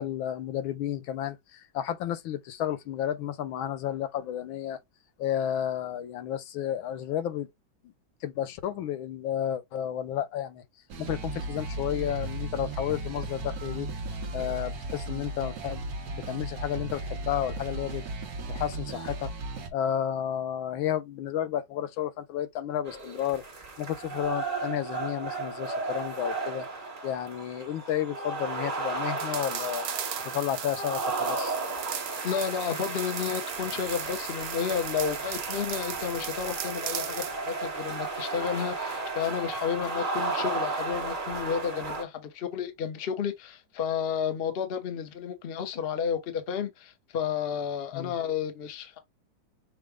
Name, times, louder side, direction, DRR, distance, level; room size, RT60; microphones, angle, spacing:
voice 1, 0.0-4.8 5.2-7.5 8.2-10.6 11.0-13.9 14.3-15.8 16.1-18.0 18.5-19.3 19.7-23.4 23.8-26.7 27.0-29.9 30.2-31.6 47.9-48.2, left 10 dB, 80° left, 1.5 m, -32 dB
sound 1, 10.9-19.7, right 2 dB, 55° right, 1.3 m, -36 dB
sound 2, 22.9-42.0, right 3 dB, 25° right, 1.2 m, -34 dB
sound 3, 29.2-37.4, right 10 dB, 80° right, 1.5 m, -38 dB
voice 2, 32.2-49.0, left 7 dB, 45° left, 0.8 m, -32 dB
6.3 x 2.2 x 3.4 m
omnidirectional pair, 2.2 m